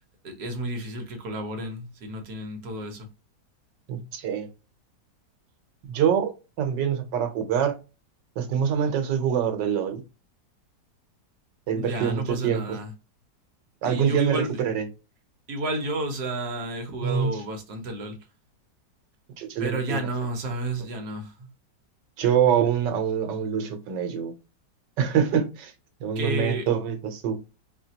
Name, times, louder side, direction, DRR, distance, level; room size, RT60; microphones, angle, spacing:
voice 1, 0.2-3.1 11.8-12.9 13.8-14.6 15.5-18.2 19.6-21.5 26.1-26.7, right 1 dB, 65° right, 1.5 m, -31 dB
voice 2, 3.9-4.5 5.9-6.3 6.6-7.8 8.4-10.0 11.7-12.8 13.8-14.8 17.0-17.3 19.4-20.1 22.2-24.3 25.0-25.7 26.0-27.3, right 8 dB, 80° right, 1.5 m, -25 dB
4.7 x 2.9 x 2.8 m
omnidirectional pair, 1.9 m